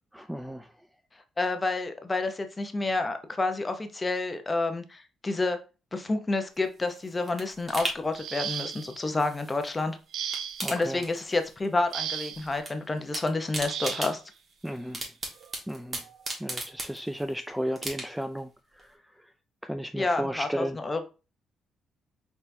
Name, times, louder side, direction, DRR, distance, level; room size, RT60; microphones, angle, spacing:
voice 1, 0.1-0.7 10.6-11.0 14.6-15.0 15.7-16.0 16.4-18.5 18.8-18.9 19.6-20.8, equal, 5° right, 0.3 m, -33 dB
voice 2, 1.4-5.6 5.9-10.0 10.7-14.2 19.9-21.0, left 2 dB, 25° left, 0.8 m, -29 dB
sound 1, 6.6-9.8 10.1-11.6 11.9-12.7 13.0-17.3 17.7-18.4 18.8-18.9, right 2 dB, 35° right, 1.6 m, -38 dB
sound 2, 8.1-9.0 10.1-10.8 11.9-12.5 13.7-14.2 15.4-15.5 16.0-16.2, right 9 dB, 75° right, 0.4 m, -35 dB
4.2 x 4.0 x 2.7 m
cardioid pair, 90°, 0 cm